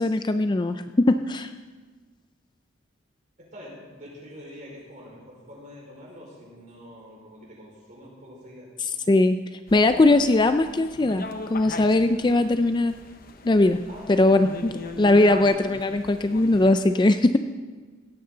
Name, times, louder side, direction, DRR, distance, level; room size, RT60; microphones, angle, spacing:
voice 1, 0.0-1.5 9.1-9.4 9.7-12.9 13.4-13.8 14.1-17.4, left 2 dB, 25° left, 9 dB, 0.4 m, -20 dB
voice 2, 3.5-8.7 13.9-14.3, equal, 40° right, -3 dB, 5.0 m, -45 dB
sound 1, 9.7-16.8, left 3 dB, 45° left, 0.9 m, -40 dB
17.0 x 13.5 x 3.9 m, 1.4 s
head